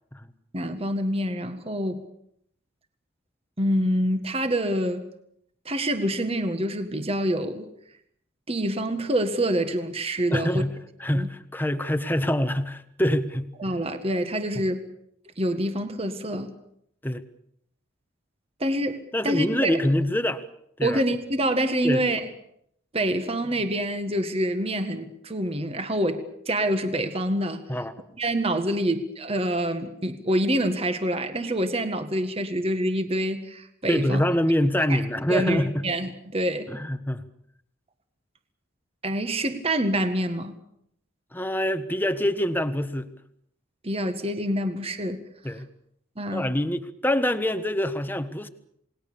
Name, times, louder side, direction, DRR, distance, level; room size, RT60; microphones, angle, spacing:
voice 1, 0.5-2.0 3.6-5.0 5.6-7.7 8.5-10.6 11.1-11.3 13.6-14.8 15.4-16.5 18.6-19.8 20.8-22.2 22.9-27.6 28.2-34.2 34.9-35.0 35.3-36.7 39.0-40.5 43.8-45.2 46.2-46.4, right 1 dB, 30° right, 8 dB, 1.8 m, -26 dB
voice 2, 10.3-10.7 11.0-13.5 14.5-14.6 17.0-17.2 19.1-20.4 20.8-21.0 21.8-22.0 27.7-27.9 33.9-35.8 36.7-37.2 41.3-43.1 45.4-45.7 46.3-48.5, left 1 dB, 10° left, 11 dB, 1.3 m, -25 dB
28.5 x 20.0 x 7.0 m, 0.72 s
head